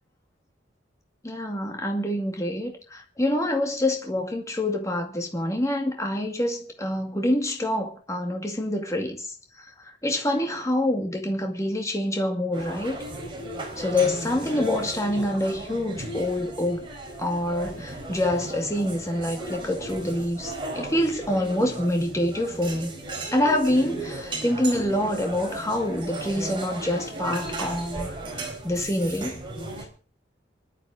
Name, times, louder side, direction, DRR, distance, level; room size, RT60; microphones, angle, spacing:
voice 1, 1.2-9.3 10.0-13.0 13.8-16.9 17.2-23.0 23.3-29.4, left 1 dB, 15° left, 2.2 m, -26 dB
sound 1, 12.5-29.8, right 2 dB, 25° right, 4.6 m, -35 dB
25.5 x 11.5 x 3.8 m
head